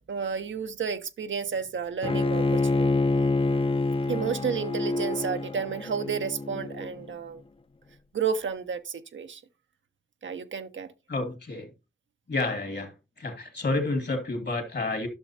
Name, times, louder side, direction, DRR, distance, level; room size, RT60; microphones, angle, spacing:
voice 1, 0.1-2.9 4.1-7.4 8.1-9.4 10.2-10.9, right 6 dB, 85° right, 0.7 m, -31 dB
Bowed string instrument, 2.0-7.1, left 3 dB, 30° left, 0.5 m, -27 dB
voice 2, 11.1-11.7 12.3-12.9 13.2-15.1, left 2 dB, 65° left, 2.2 m, -29 dB
11.5 x 6.3 x 2.7 m
cardioid pair, 50°, 19 cm